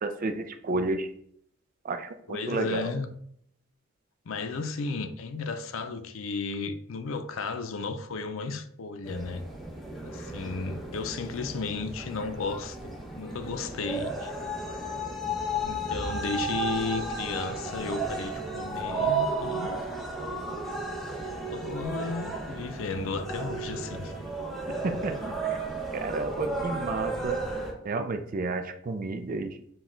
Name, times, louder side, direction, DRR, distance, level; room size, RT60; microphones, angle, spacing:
voice 1, 0.0-1.1 1.8-2.9 24.8-25.6 25.9-27.4 27.8-29.5, right 3 dB, 45° right, 0.4 m, -31 dB
voice 2, 2.3-3.1 4.3-9.4 10.0-14.3 15.7-19.8 21.5-24.1, left 4 dB, 80° left, 0.5 m, -34 dB
sound 1, 9.0-27.7, right 2 dB, ahead, 0.9 m, -33 dB
6.2 x 2.3 x 3.7 m
head